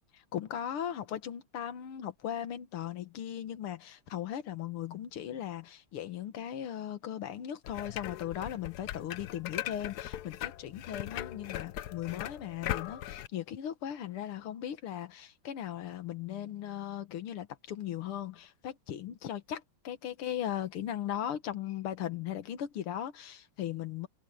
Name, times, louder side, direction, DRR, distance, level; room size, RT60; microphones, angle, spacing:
voice 1, 0.3-24.1, left 10 dB, 85° left, 2.1 m, -38 dB
sound 1, 7.6-13.3, left 12 dB, 70° left, 1.0 m, -39 dB
omnidirectional pair, 2.4 m